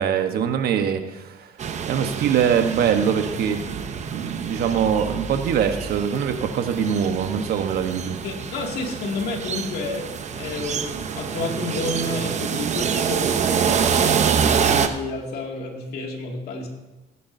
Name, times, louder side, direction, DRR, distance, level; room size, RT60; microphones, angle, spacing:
voice 1, 0.0-1.5 1.9-8.2, right 8 dB, 65° right, 7 dB, 1.2 m, -23 dB
sound 1, 1.6-14.9, right 7 dB, 45° right, 0.8 m, -26 dB
voice 2, 8.2-14.1 14.4-16.7, left 3 dB, 70° left, 1 dB, 2.4 m, -30 dB
18.0 x 9.9 x 2.7 m, 1.1 s
cardioid pair, 110°, 17 cm